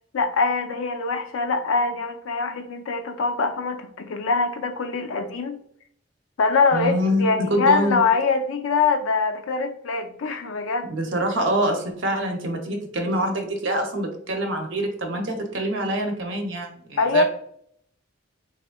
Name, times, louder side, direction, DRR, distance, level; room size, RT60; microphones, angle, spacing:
voice 1, 0.1-5.6 6.4-10.9 17.0-17.2, left 4 dB, 85° left, 8 dB, 0.4 m, -23 dB
voice 2, 6.7-8.0 10.9-17.2, equal, 70° right, 3 dB, 0.7 m, -25 dB
3.4 x 3.1 x 2.2 m, 0.67 s
head